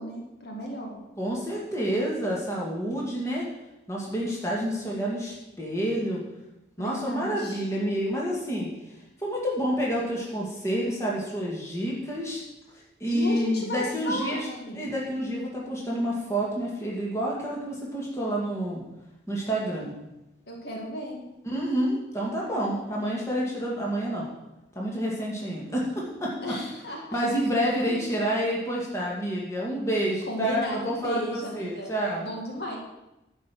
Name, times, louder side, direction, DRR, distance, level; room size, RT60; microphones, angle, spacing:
voice 1, 0.0-1.0 6.8-7.6 13.1-14.9 20.5-21.3 26.4-27.2 27.8-28.1 30.3-31.9 32.2-32.8, equal, 65° left, 0 dB, 1.8 m, -34 dB
voice 2, 1.2-3.5 3.9-6.2 6.8-8.7 9.2-12.4 13.0-14.5 14.7-18.8 19.3-19.9 21.5-24.3 24.8-26.6 27.1-32.4, equal, 15° left, -4 dB, 2.1 m, -28 dB
10.5 x 5.4 x 6.2 m, 0.94 s
head